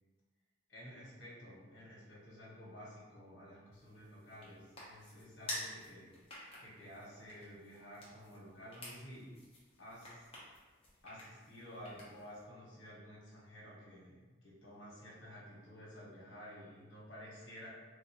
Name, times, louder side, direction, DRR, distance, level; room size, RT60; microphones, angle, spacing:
voice 1, 0.7-6.1 6.6-9.3 9.8-10.3 11.0-17.7, equal, 75° left, -6 dB, 1.2 m, -52 dB
sound 1, 3.7-12.4, left 1 dB, 30° left, 0.8 m, -50 dB
3.3 x 2.7 x 2.9 m, 1.3 s
head